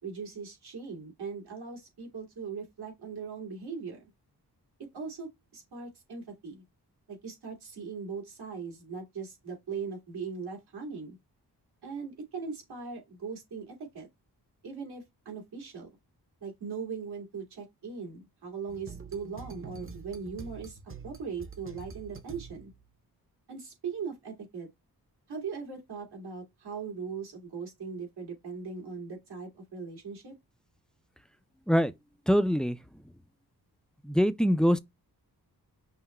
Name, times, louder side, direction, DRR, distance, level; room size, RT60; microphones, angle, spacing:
voice 1, 0.0-4.0 4.9-6.6 7.1-11.2 11.8-14.1 14.6-15.9 16.4-20.8 21.0-22.7 23.5-24.7 25.3-30.3, right 5 dB, 80° right, 2.3 m, -39 dB
sound 1, 18.7-22.9, right 5 dB, 35° right, 0.8 m, -45 dB
voice 2, 32.3-32.8 34.0-34.8, equal, ahead, 0.3 m, -23 dB
5.8 x 2.1 x 4.2 m
wide cardioid pair, 85°, 39 cm